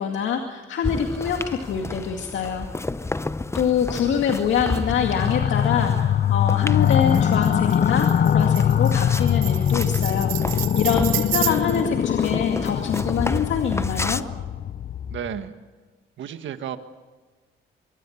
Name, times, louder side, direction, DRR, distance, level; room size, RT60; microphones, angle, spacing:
voice 1, 0.0-2.7 3.5-14.2, left 7 dB, 70° left, 4 dB, 2.3 m, -25 dB
sound 1, 0.8-14.2, left 2 dB, 15° left, 0.8 m, -32 dB
sound 2, 4.9-15.4, left 9 dB, 50° left, 0.7 m, -22 dB
Tambourine, 6.8-11.9, right 16 dB, 90° right, 0.7 m, -31 dB
voice 2, 15.1-15.6 16.2-16.8, right 9 dB, 70° right, 9 dB, 1.8 m, -32 dB
24.0 x 23.5 x 7.4 m, 1.3 s
cardioid pair, 90°, 20 cm